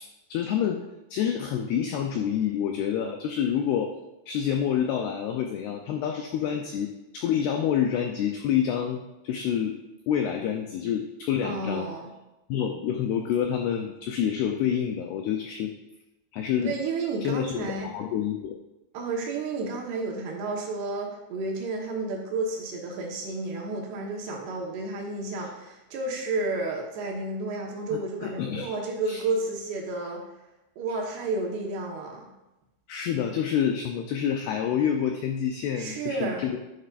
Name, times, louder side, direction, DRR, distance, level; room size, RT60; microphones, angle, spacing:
voice 1, 0.3-0.9 1.1-3.9 4.3-9.8 10.1-11.9 12.5-15.7 16.3-16.8 17.2-18.6 27.9-28.7 29.1-29.2 32.9-36.6, left 9 dB, 85° left, 4 dB, 2.3 m, -28 dB
voice 2, 11.4-12.1 16.6-17.9 18.9-30.2 30.8-32.3 35.8-36.4, right 3 dB, 70° right, -1 dB, 3.2 m, -31 dB
11.0 x 10.0 x 2.5 m, 0.97 s
omnidirectional pair, 5.4 m